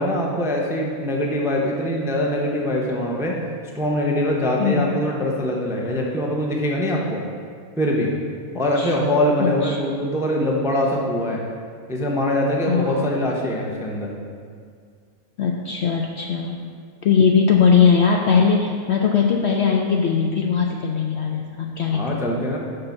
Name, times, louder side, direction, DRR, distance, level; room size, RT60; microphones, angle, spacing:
voice 1, 0.0-3.4 3.7-7.2 7.8-8.1 8.5-11.4 11.9-14.1 21.9-22.6, left 1 dB, 5° right, -1 dB, 0.5 m, -23 dB
voice 2, 4.6-4.9 8.8-8.9 9.4-9.8 12.7-13.1 15.4-16.6 17.0-22.2, left 6 dB, 65° left, 0 dB, 0.7 m, -20 dB
6.6 x 5.7 x 5.9 m, 2.1 s
omnidirectional pair, 1.6 m